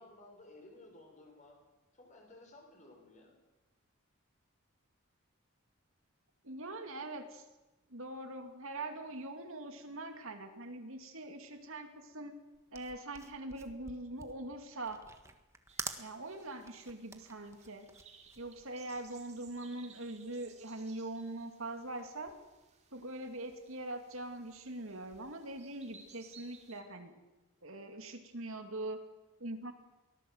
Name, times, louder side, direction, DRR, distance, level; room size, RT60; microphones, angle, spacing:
voice 1, 0.0-1.5 1.9-3.4, left 2 dB, 35° left, 2 dB, 6.2 m, -56 dB
voice 2, 6.4-7.4 7.9-12.3 12.7-15.0 15.9-17.9 18.4-22.3 22.9-27.1 27.6-29.0 29.4-29.7, right 2 dB, 65° right, 6 dB, 2.5 m, -43 dB
sound 1, 12.5-19.2, right 3 dB, 15° right, 1.5 m, -47 dB
sound 2, 15.7-26.8, right 5 dB, 30° right, 2.7 m, -61 dB
23.5 x 17.5 x 8.0 m, 1.1 s
head